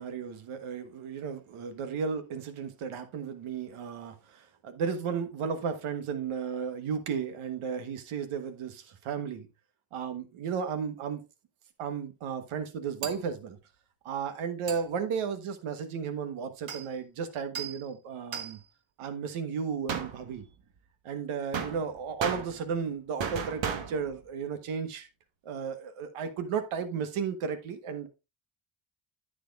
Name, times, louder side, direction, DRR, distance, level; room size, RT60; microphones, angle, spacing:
voice 1, 0.0-9.5 9.9-11.3 11.8-13.6 14.0-18.6 19.0-20.4 21.0-25.1 25.4-28.1, right 6 dB, 85° right, 1.3 m, -34 dB
sound 1, 13.0-13.3 14.7-14.8 16.7-16.9 17.5-17.9 18.3-18.6 19.9-20.5 21.5-22.9 23.2-24.2, right 7 dB, 65° right, 1.5 m, -35 dB
10.0 x 7.6 x 2.4 m
supercardioid pair, 55°, 48 cm